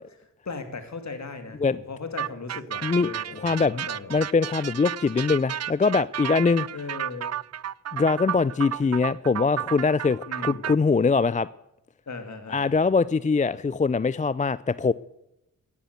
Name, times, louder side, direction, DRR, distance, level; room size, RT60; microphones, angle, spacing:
voice 1, 0.1-4.1 6.7-7.3 10.3-10.7 12.1-12.8, left 4 dB, 55° left, 8 dB, 2.6 m, -38 dB
sound 1, 2.2-10.7, right 10 dB, 55° right, 0.5 m, -33 dB
voice 2, 3.4-6.7 7.9-11.5 12.5-14.9, left 4 dB, 25° left, 18 dB, 0.4 m, -23 dB
15.0 x 10.0 x 8.2 m, 0.88 s
cardioid pair, 45°, 32 cm